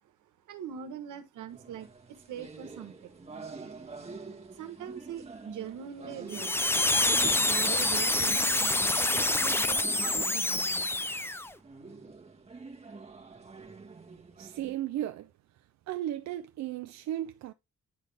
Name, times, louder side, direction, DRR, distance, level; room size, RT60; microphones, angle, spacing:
voice 1, 0.5-3.2 4.5-6.7 7.1-11.0, right 9 dB, 80° right, 1.3 m, -42 dB
sound 1, 1.5-14.8, right 4 dB, 20° right, 1.4 m, -47 dB
sound 2, 6.3-11.5, left 2 dB, 10° left, 0.5 m, -27 dB
voice 2, 14.4-15.3 15.9-17.5, right 12 dB, 65° right, 0.5 m, -35 dB
9.7 x 4.0 x 3.3 m
cardioid pair, 90°, 30 cm